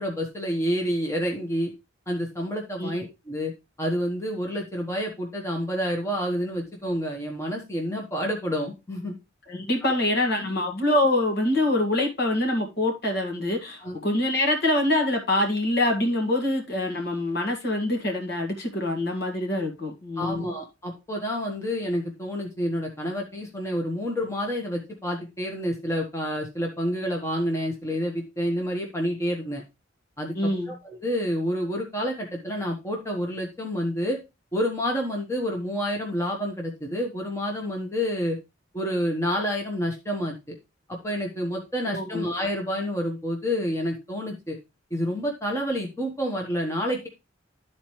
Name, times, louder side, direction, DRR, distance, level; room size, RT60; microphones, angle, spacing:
voice 1, 0.0-1.7 2.1-3.5 3.8-9.1 9.8-10.5 13.8-13.9 20.2-29.6 30.2-34.2 34.5-38.4 38.7-40.6 40.9-44.6 44.9-47.1, equal, 15° left, 1.3 m, -29 dB
voice 2, 9.5-20.5 30.3-30.7 41.9-42.3, left 1 dB, 55° left, 1.9 m, -25 dB
12.5 x 4.3 x 3.1 m
head